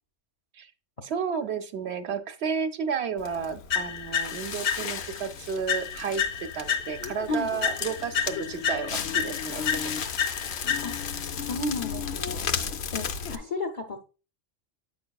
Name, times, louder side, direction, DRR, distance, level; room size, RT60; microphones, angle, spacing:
voice 1, 1.0-9.8, right 6 dB, 65° right, 9 dB, 0.9 m, -32 dB
Crackle, 3.2-13.4, left 7 dB, 65° left, 0.9 m, -35 dB
sound 1, 3.7-5.2 5.7-7.2 7.6-11.2, left 8 dB, 90° left, 1.3 m, -30 dB
voice 2, 11.5-12.4 12.9-14.1, left 2 dB, 35° left, 2 dB, 0.7 m, -32 dB
8.7 x 5.8 x 2.3 m, 0.34 s
omnidirectional pair, 1.2 m